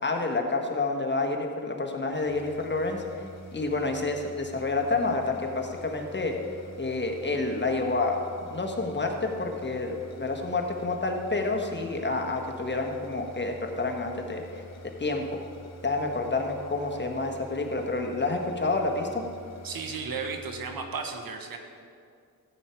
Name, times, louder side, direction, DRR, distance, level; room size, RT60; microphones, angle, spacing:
voice 1, 0.0-3.0 3.5-6.3 6.8-14.6 15.0-15.4 15.8-19.2, left 3 dB, 30° left, 2 dB, 1.5 m, -29 dB
sound 1, 2.1-20.7, left 1 dB, 45° left, 1.2 m, -48 dB
voice 2, 19.6-21.6, right 5 dB, 70° right, 4 dB, 1.4 m, -34 dB
14.0 x 8.3 x 4.6 m, 2.3 s
cardioid pair, 80°, 36 cm